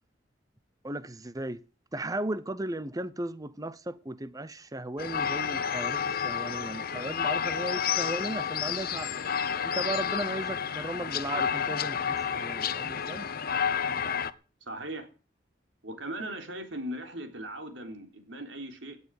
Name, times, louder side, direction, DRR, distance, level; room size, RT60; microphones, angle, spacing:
voice 1, 0.8-1.6 1.9-9.1 9.6-13.3, right 1 dB, 20° right, 0.7 m, -36 dB
sound 1, 5.0-14.3, left 7 dB, 55° left, 1.0 m, -30 dB
voice 2, 14.6-15.1 15.8-19.0, right 1 dB, 85° right, 3.7 m, -38 dB
17.5 x 9.8 x 6.6 m
head